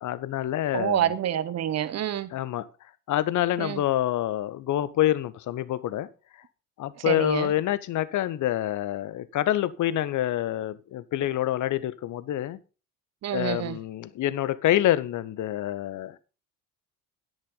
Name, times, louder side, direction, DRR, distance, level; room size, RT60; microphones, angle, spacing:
voice 1, 0.0-1.1 2.3-2.7 3.1-6.1 6.8-12.6 13.3-16.2, left 13 dB, 40° left, 0.8 m, -27 dB
voice 2, 0.7-2.3 3.6-3.8 7.0-7.5 13.2-13.8, right 10 dB, 35° right, 0.9 m, -27 dB
10.0 x 9.0 x 3.9 m
figure-of-eight pair, 55°, 48 cm